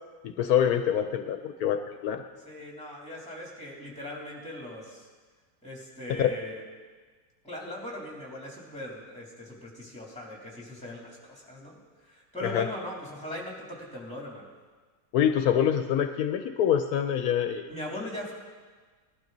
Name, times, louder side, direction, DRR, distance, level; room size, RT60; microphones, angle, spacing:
voice 1, 0.2-2.2 6.2-6.3 12.4-12.7 15.1-17.7, left 9 dB, 75° left, 7 dB, 1.1 m, -25 dB
voice 2, 2.4-5.1 5.6-6.6 7.4-14.5 17.7-18.3, left 1 dB, 5° left, -3 dB, 3.1 m, -40 dB
18.5 x 12.0 x 3.9 m, 1.4 s
omnidirectional pair, 1.6 m